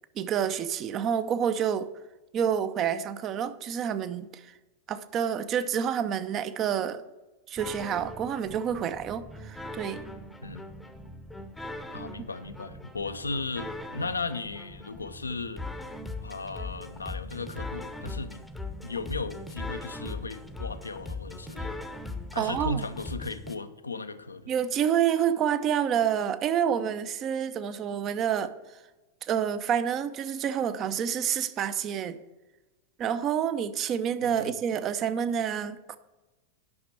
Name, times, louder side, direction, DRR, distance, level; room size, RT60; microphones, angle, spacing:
voice 1, 0.2-1.9 2.3-4.5 4.9-7.0 7.5-10.0 22.3-22.8 24.5-28.6 29.2-32.2 33.0-36.0, right 8 dB, 30° right, 0.6 m, -28 dB
sound 1, 7.6-23.6, left 2 dB, 5° left, 0.8 m, -40 dB
voice 2, 11.9-15.6 16.2-18.4 18.8-21.7 22.3-24.5 34.2-34.5, left 3 dB, 80° left, 0.6 m, -36 dB
9.6 x 5.9 x 6.3 m
figure-of-eight pair, 90°, 0 cm